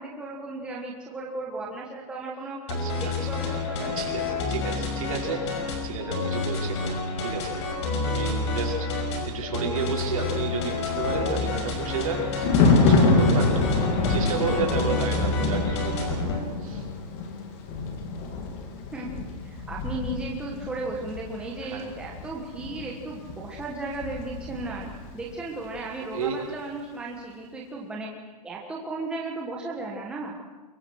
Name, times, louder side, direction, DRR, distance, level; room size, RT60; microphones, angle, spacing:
voice 1, 0.0-2.6 3.0-4.1 18.9-19.1 19.4-30.4, right 2 dB, 5° right, -2 dB, 1.4 m, -35 dB
sound 1, 2.7-16.4, left 3 dB, 40° left, 5.5 m, -29 dB
voice 2, 4.0-6.9 7.2-7.5 8.0-13.6 14.1-16.9 21.6-21.8 26.1-26.4, right 5 dB, 55° right, -1 dB, 5.7 m, -32 dB
Thunder, 10.7-25.2 25.5-25.8, left 3 dB, 25° left, 2.2 m, -27 dB
24.0 x 22.5 x 6.3 m, 1.3 s
hypercardioid pair, 175°, 21 cm